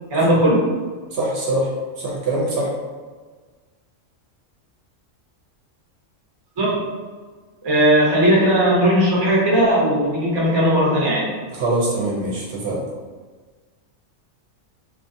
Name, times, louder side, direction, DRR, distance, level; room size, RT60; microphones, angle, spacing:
voice 1, 0.1-0.7 6.6-6.9 7.6-11.3, right 1 dB, 35° right, -5 dB, 0.4 m, -17 dB
voice 2, 1.1-1.7 2.0-2.7 11.5-12.8, right 2 dB, 65° right, -3 dB, 0.7 m, -23 dB
2.3 x 2.2 x 2.6 m, 1.4 s
omnidirectional pair, 1.3 m